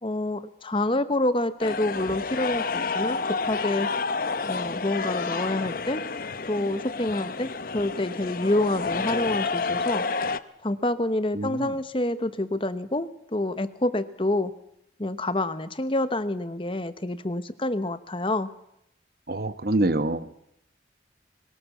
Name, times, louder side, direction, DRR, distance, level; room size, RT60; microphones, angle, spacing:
voice 1, 0.0-3.9 4.4-6.0 6.5-10.1 10.6-14.5 15.0-18.5, left 1 dB, 30° left, 12 dB, 1.0 m, -27 dB
sound 1, 1.6-10.4, left 4 dB, 50° left, 0.8 m, -30 dB
voice 2, 11.3-11.7 19.3-20.3, right 2 dB, 55° right, 12 dB, 1.1 m, -26 dB
22.5 x 19.5 x 7.2 m, 0.79 s
head